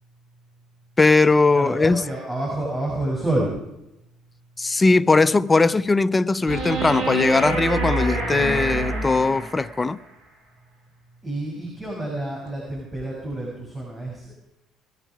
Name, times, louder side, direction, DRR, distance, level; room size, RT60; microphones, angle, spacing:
voice 1, 1.0-2.0 4.6-10.0, left 3 dB, 20° left, 0.6 m, -19 dB
voice 2, 1.5-3.5 11.2-14.3, right 1 dB, 15° right, 6.7 m, -28 dB
sound 1, 6.5-9.8 12.5-12.6, right 2 dB, 65° right, 5.0 m, -26 dB
21.0 x 13.0 x 5.0 m
supercardioid pair, 70°, 0 cm